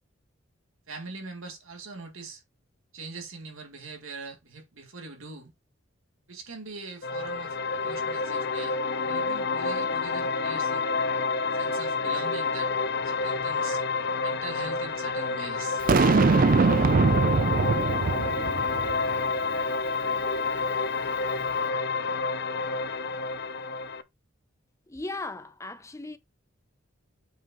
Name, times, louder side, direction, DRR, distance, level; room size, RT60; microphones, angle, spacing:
voice 1, 0.9-2.4 2.9-5.5 6.3-10.8 11.5-12.7 13.0-13.8 14.2-15.8, right 3 dB, 85° right, 2.2 m, -42 dB
sound 1, 7.0-24.0, left 4 dB, 55° left, 0.7 m, -29 dB
Boom, 15.9-19.2, right 4 dB, 45° right, 0.4 m, -22 dB
voice 2, 24.9-26.2, left 2 dB, 15° left, 0.5 m, -37 dB
7.9 x 4.7 x 3.0 m
head